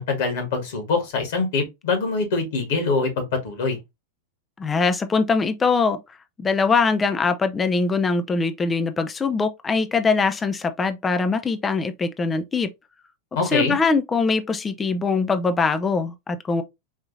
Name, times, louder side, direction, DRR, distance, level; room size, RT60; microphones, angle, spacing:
voice 1, 0.0-3.8 13.3-13.7, left 4 dB, 55° left, 1.5 m, -24 dB
voice 2, 4.6-6.0 6.4-12.7 13.5-16.6, left 4 dB, 15° left, 0.5 m, -22 dB
4.7 x 2.7 x 2.7 m
figure-of-eight pair, 90°, 0 cm